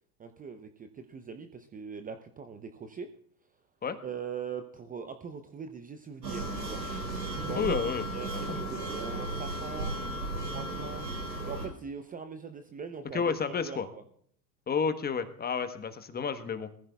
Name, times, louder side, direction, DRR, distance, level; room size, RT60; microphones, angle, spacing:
voice 1, 0.2-3.1 4.0-6.8 7.4-7.7 8.1-9.9 10.5-11.1 11.4-14.0, right 6 dB, 15° right, 8 dB, 0.7 m, -41 dB
sound 1, 6.2-11.7, right 2 dB, 85° right, 4.1 m, -35 dB
voice 2, 7.6-8.0 8.5-8.6 13.1-13.9 14.7-16.7, left 6 dB, 20° left, 10 dB, 1.1 m, -30 dB
21.0 x 14.5 x 2.3 m, 0.65 s
hypercardioid pair, 90°, 50 cm